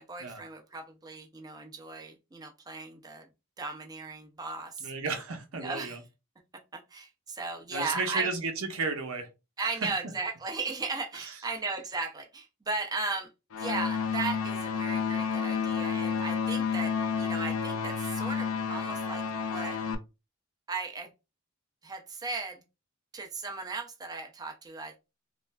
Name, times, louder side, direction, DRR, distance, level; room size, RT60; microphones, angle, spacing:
voice 1, 0.0-3.2 3.6-4.9 5.6-6.0 6.7-8.3 9.6-13.3 13.6-19.8 20.7-21.1 21.8-22.6 23.1-24.9, right 3 dB, 20° right, 0.4 m, -36 dB
voice 2, 4.8-6.0 7.7-9.3 9.6-9.9 11.1-11.3, right 4 dB, 90° right, 0.7 m, -33 dB
sound 1, 13.5-20.0, left 6 dB, 85° left, 0.5 m, -30 dB
3.1 x 2.4 x 2.2 m
head